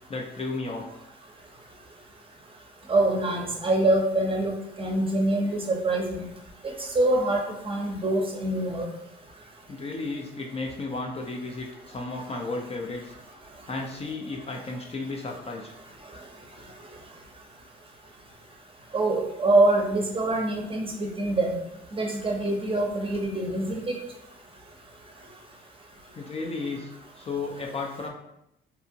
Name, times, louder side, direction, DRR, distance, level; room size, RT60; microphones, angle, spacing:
voice 1, 0.1-0.9 9.7-13.1 13.7-15.7 26.1-26.9 27.2-28.1, left 3 dB, 30° left, 0 dB, 0.4 m, -33 dB
voice 2, 2.9-4.5 4.8-6.3 6.9-8.9 18.9-21.5 21.9-23.9, right 2 dB, 25° right, 0 dB, 0.6 m, -24 dB
2.7 x 2.4 x 2.7 m, 0.82 s
cardioid pair, 90°, 20 cm